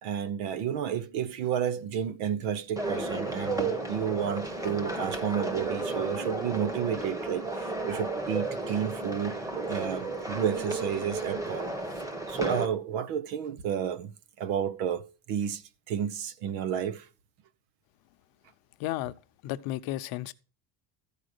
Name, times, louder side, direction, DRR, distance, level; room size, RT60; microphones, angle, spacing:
voice 1, 0.0-9.4 9.7-11.7 12.3-14.1 14.4-15.0 15.3-15.6 15.9-17.1, right 8 dB, 85° right, 1.1 m, -31 dB
sound 1, 2.8-12.7, right 2 dB, 10° right, 1.2 m, -33 dB
sound 2, 3.4-10.0 10.5-10.6, left 1 dB, 45° right, 3.4 m, -58 dB
voice 2, 18.8-19.1 19.4-20.3, left 15 dB, 65° left, 0.8 m, -33 dB
14.0 x 4.9 x 6.6 m
cardioid pair, 160°, 39 cm